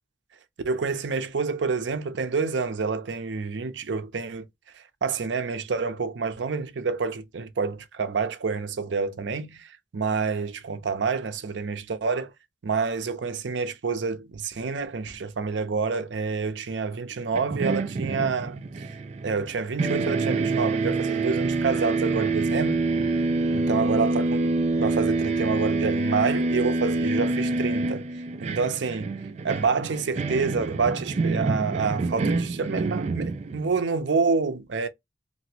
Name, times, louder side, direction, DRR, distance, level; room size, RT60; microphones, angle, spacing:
voice 1, 0.6-4.5 4.7-12.3 12.6-18.9 19.2-22.9 23.5-24.5 24.8-28.1 28.4-29.1 29.4-34.9, right 4 dB, 85° right, 0.6 m, -28 dB
sound 1, 17.3-19.5 19.8-33.8, right 3 dB, 35° right, 0.3 m, -26 dB
2.9 x 2.6 x 2.8 m
head